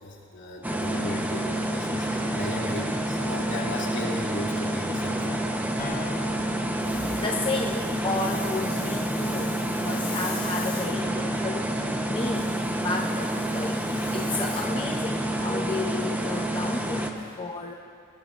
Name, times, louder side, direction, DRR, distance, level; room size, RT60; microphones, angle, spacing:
voice 1, 0.0-5.5, left 2 dB, 55° left, -3 dB, 2.7 m, -36 dB
sound 1, 0.6-17.1, right 1 dB, 10° right, 0.9 m, -28 dB
sound 2, 5.8-9.4, left 5 dB, 40° left, 1.2 m, -44 dB
voice 2, 6.9-17.1 17.4-17.7, left 3 dB, 25° left, 1 dB, 0.6 m, -32 dB
23.0 x 21.0 x 2.5 m, 2.6 s
head